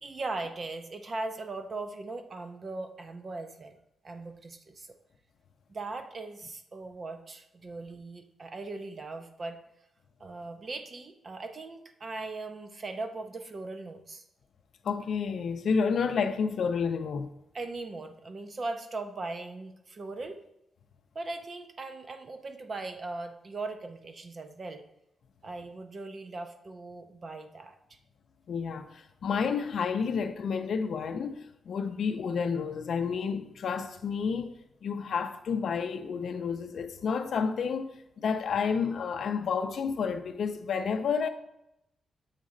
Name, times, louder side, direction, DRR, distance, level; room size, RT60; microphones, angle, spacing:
voice 1, 0.0-3.8 4.0-4.9 5.7-9.6 10.2-14.2 17.5-20.4 21.1-24.8 25.4-27.8, right 3 dB, 35° right, 0.6 m, -39 dB
voice 2, 14.8-17.3 28.5-34.5 34.8-41.3, left 6 dB, 60° left, 0.5 m, -30 dB
7.2 x 4.2 x 3.8 m
wide cardioid pair, 155°, 0 cm